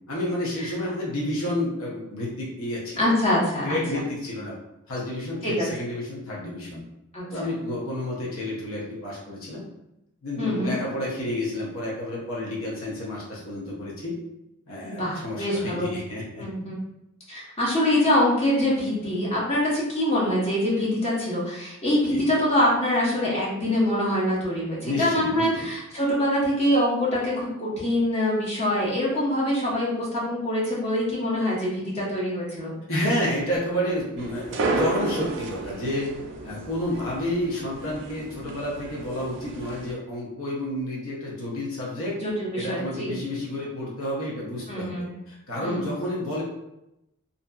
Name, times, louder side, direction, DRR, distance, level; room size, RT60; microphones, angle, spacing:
voice 1, 0.1-3.0 3.6-4.6 4.9-6.8 7.3-9.6 10.2-14.2 14.7-16.4 22.0-22.2 24.8-25.7 32.9-36.1 36.4-42.2 42.5-46.4, left 1 dB, 75° left, -5 dB, 0.7 m, -30 dB
voice 2, 3.0-3.8 5.4-5.6 7.1-7.3 10.4-10.7 14.8-15.9 16.4-16.8 17.3-32.7 42.2-43.1 44.7-45.1 45.6-45.9, left 1 dB, 30° left, -6 dB, 0.8 m, -24 dB
sound 1, 34.2-39.9, right 3 dB, 55° right, 0.4 m, -32 dB
2.7 x 2.5 x 2.3 m, 0.88 s
head